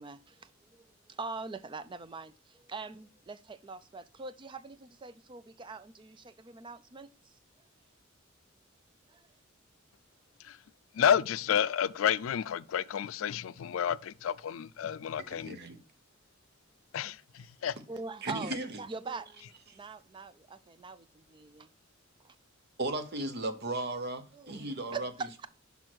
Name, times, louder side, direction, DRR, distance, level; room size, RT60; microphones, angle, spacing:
voice 1, 0.0-7.3 9.1-9.3 17.9-21.7 22.2-22.4 24.3-24.6 24.9-25.5, right 4 dB, 25° right, 0.4 m, -43 dB
voice 2, 11.0-15.6 16.9-17.2 17.6-17.7, left 8 dB, 85° left, 0.4 m, -30 dB
voice 3, 15.2-15.8 18.2-18.7 22.8-25.1, right 2 dB, 55° right, 0.8 m, -35 dB
6.1 x 5.4 x 4.5 m
head